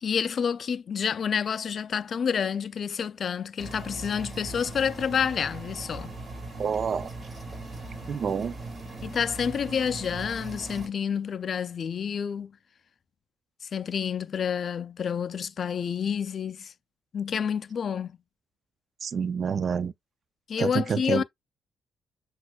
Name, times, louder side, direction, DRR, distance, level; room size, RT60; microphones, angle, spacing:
voice 1, 0.0-6.1 9.0-12.5 13.7-16.7 17.1-18.2 20.5-21.2, left 7 dB, 50° left, 0.3 m, -29 dB
sound 1, 3.6-10.9, right 2 dB, 35° right, 1.8 m, -39 dB
voice 2, 6.6-7.1 8.1-8.6 19.0-19.9 20.6-21.2, right 6 dB, 50° right, 0.3 m, -28 dB
6.0 x 2.4 x 2.2 m
cardioid pair, 90°, 0 cm